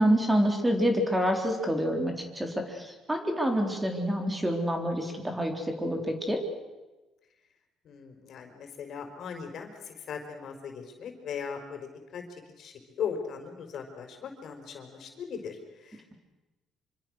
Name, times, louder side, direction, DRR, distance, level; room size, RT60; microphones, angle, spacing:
voice 1, 0.0-6.4, equal, 10° right, 3 dB, 4.3 m, -27 dB
voice 2, 7.8-16.1, left 7 dB, 60° left, 5 dB, 4.9 m, -39 dB
26.5 x 25.0 x 6.5 m, 1.1 s
cardioid pair, 115°, 0 cm